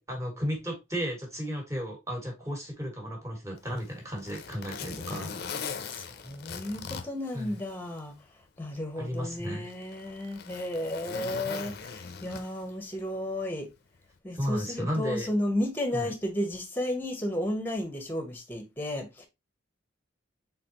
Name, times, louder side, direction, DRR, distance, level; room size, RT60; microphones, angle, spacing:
voice 1, 0.0-5.4 7.3-7.5 9.0-9.7 14.4-15.3 15.9-16.1, equal, 15° right, 1.7 m, -34 dB
Zipper (clothing), 3.6-8.0 8.4-8.5 9.3-12.8 13.9-14.1, left 6 dB, 50° left, 0.6 m, -40 dB
voice 2, 5.9-8.2 8.6-13.7 14.2-19.3, left 1 dB, 10° left, 1.0 m, -33 dB
4.1 x 3.8 x 2.9 m
head